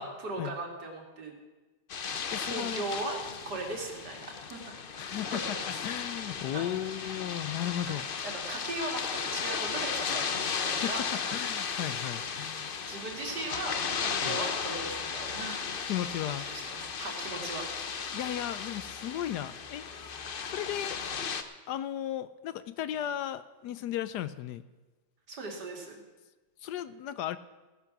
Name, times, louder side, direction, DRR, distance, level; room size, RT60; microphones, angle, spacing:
voice 1, 0.0-1.3 2.3-5.8 6.5-6.7 7.9-11.4 12.6-15.7 16.3-17.7 25.3-26.0, right 2 dB, 65° right, 1 dB, 3.0 m, -39 dB
sound 1, 1.9-21.4, left 6 dB, 45° left, 0.7 m, -35 dB
voice 2, 2.3-2.8 5.0-8.0 10.7-12.9 14.2-14.4 15.9-16.5 18.1-21.0 21.7-24.6 26.6-27.4, left 11 dB, 75° left, 14 dB, 1.1 m, -36 dB
16.0 x 10.5 x 6.0 m, 1.2 s
omnidirectional pair, 1.9 m